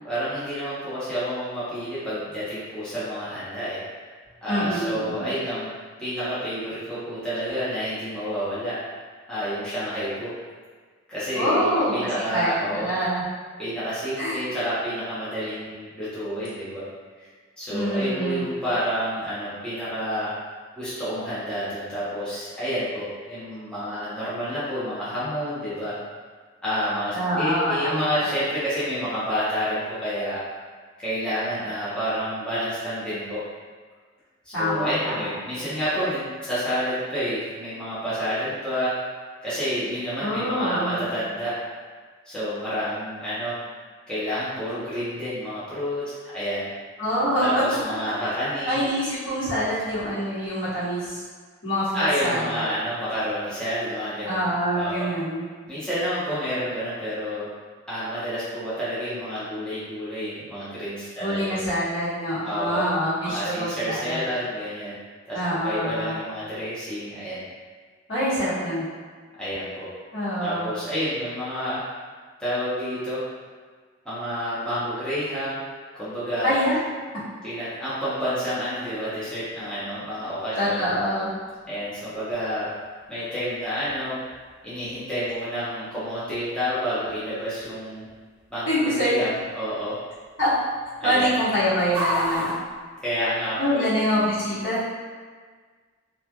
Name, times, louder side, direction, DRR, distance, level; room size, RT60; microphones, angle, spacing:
voice 1, 0.0-3.8 4.4-5.7 6.0-8.8 9.3-10.3 11.1-12.9 13.6-16.9 17.2-17.3 17.6-20.3 20.8-26.0 26.6-30.4 31.0-33.5 34.4-39.0 39.4-41.6 42.3-43.6 44.1-46.7 47.4-48.8 51.9-55.1 55.7-57.5 57.9-61.6 62.4-62.9 63.2-65.0 65.3-65.4 65.6-67.4 69.4-69.9 70.4-71.8 72.4-73.3 74.0-75.6 75.9-76.5 77.4-80.8 81.7-82.8 83.1-84.2 84.6-88.0 88.5-90.0 91.0-91.3 93.0-93.8, equal, 5° left, -13 dB, 0.7 m, -29 dB
voice 2, 4.5-5.2 11.3-13.2 14.2-14.4 17.7-18.5 27.1-28.2 34.5-35.2 40.2-41.0 47.0-47.5 48.6-51.2 51.6-52.6 54.2-55.4 61.2-64.2 65.3-66.2 68.1-68.8 70.1-70.7 76.4-76.8 80.5-81.3 88.7-89.1 90.4-90.5 91.0-92.5 93.6-94.9, equal, 65° left, -11 dB, 1.2 m, -25 dB
sound 1, 78.9-93.8, equal, 30° right, 0.7 m, -39 dB
3.1 x 2.3 x 2.2 m, 1.5 s
head